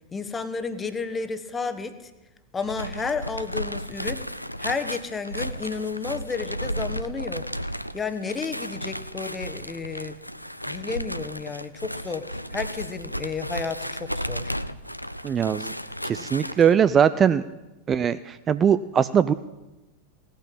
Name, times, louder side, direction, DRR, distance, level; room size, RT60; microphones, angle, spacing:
voice 1, 0.1-2.1 2.5-4.2 4.6-7.4 7.9-10.2 10.7-14.5, left 4 dB, 15° left, 10 dB, 1.3 m, -32 dB
sound 1, 2.6-16.7, equal, 90° left, 0.5 m, -34 dB
voice 2, 15.2-15.7 16.0-17.4 17.9-19.3, right 8 dB, 25° right, 14 dB, 0.4 m, -21 dB
17.0 x 9.0 x 9.1 m, 1.0 s
figure-of-eight pair, 90°, 0 cm